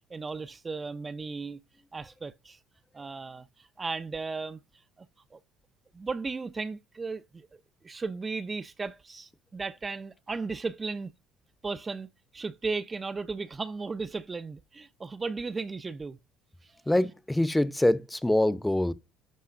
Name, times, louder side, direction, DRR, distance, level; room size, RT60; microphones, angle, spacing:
voice 1, 0.1-1.6 1.9-2.6 2.9-4.6 5.0-5.4 5.9-7.5 7.8-11.1 11.6-16.2 16.6-16.7, right 4 dB, 25° right, 0.5 m, -36 dB
voice 2, 16.9-18.9, left 1 dB, 10° left, 0.7 m, -24 dB
11.5 x 5.4 x 2.5 m
supercardioid pair, 80°, 0 cm